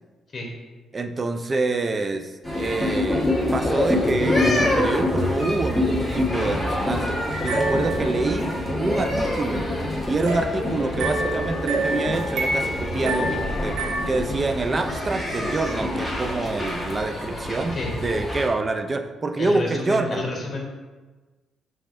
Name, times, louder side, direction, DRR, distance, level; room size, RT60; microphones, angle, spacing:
voice 1, 0.9-3.2 3.5-7.2 7.4-9.6 10.1-13.8 14.1-20.3, right 3 dB, 30° right, 7 dB, 0.3 m, -26 dB
sound 1, 2.4-18.5, left 1 dB, ahead, 1.2 m, -26 dB
sound 2, 7.3-8.8 10.2-14.0, right 2 dB, 85° right, 0.8 m, -28 dB
voice 2, 19.4-20.6, left 2 dB, 35° left, -1 dB, 1.0 m, -30 dB
5.3 x 3.6 x 2.5 m, 1.3 s
cardioid pair, 90°, 0 cm